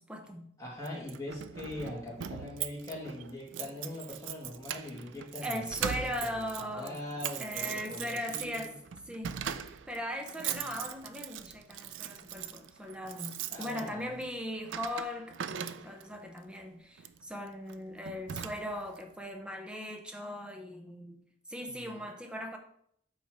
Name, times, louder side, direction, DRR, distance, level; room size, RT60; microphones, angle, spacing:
voice 1, 0.0-0.5 5.4-7.0 7.4-8.8 9.1-9.4 9.7-21.2 21.5-22.6, equal, 5° right, 4 dB, 0.7 m, -39 dB
voice 2, 0.6-6.0 6.3-8.7 13.5-14.1 21.6-22.0, left 1 dB, 20° left, -4 dB, 1.9 m, -42 dB
Keys jangling, 0.8-16.2 17.0-17.2 17.7-17.8 18.0-19.0, right 9 dB, 90° right, 0.4 m, -40 dB
8.2 x 3.1 x 4.7 m, 0.68 s
head